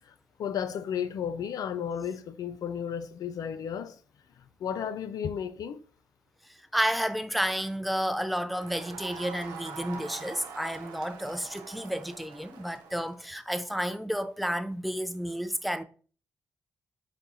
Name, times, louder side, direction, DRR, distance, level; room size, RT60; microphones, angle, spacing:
voice 1, 0.0-4.0 4.4-5.8, left 8 dB, 65° left, 0.4 m, -34 dB
voice 2, 6.7-15.8, equal, ahead, 0.4 m, -31 dB
Crowd, 8.5-13.3, right 5 dB, 80° right, 0.5 m, -44 dB
4.9 x 2.3 x 2.7 m
supercardioid pair, 50°, 7 cm